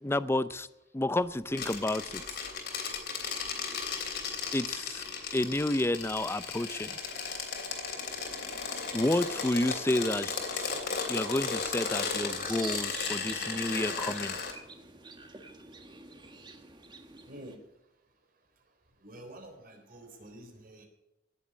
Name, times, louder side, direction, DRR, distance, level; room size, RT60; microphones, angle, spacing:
voice 1, 0.0-0.7 0.9-2.2 4.5-5.0 5.3-7.0 8.9-10.7 11.1-14.4, left 1 dB, 15° left, 15 dB, 0.5 m, -30 dB
sound 1, 1.5-14.5, left 5 dB, 60° left, 3.3 m, -35 dB
sound 2, 7.9-17.6, right 3 dB, 25° right, 1.6 m, -49 dB
voice 2, 17.2-17.6 19.0-20.9, right 1 dB, 50° right, 3 dB, 3.8 m, -48 dB
18.0 x 7.3 x 9.6 m, 0.91 s
head